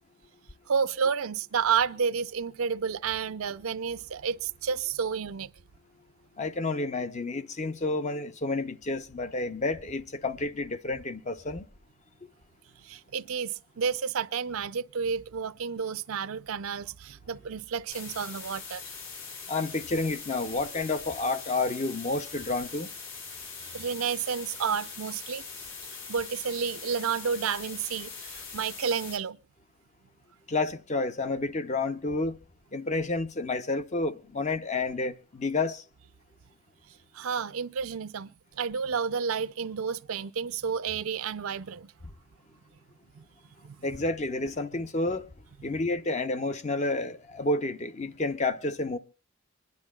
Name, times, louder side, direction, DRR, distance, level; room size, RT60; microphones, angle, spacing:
voice 1, 0.7-5.5 12.8-18.8 23.6-25.4 26.1-29.4 37.1-41.9 43.1-43.3 43.6-43.8, right 6 dB, 75° right, 0.5 m, -31 dB
voice 2, 6.4-11.7 19.5-22.9 30.5-32.4 32.7-35.8 43.8-45.2 45.6-49.0, left 2 dB, 30° left, 0.6 m, -30 dB
sound 1, 17.9-29.2, left 5 dB, 60° left, 2.3 m, -42 dB
25.5 x 10.5 x 2.3 m
head